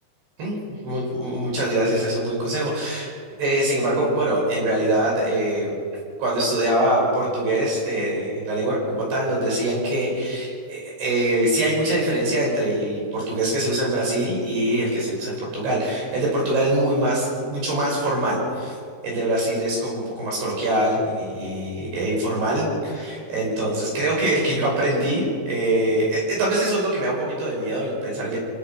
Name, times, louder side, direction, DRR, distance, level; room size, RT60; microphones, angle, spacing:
voice 1, 0.4-3.1 3.4-5.8 6.2-18.8 19.0-28.4, right 1 dB, 70° right, -3 dB, 7.6 m, -23 dB
27.0 x 18.5 x 6.1 m, 2.2 s
omnidirectional pair, 4.9 m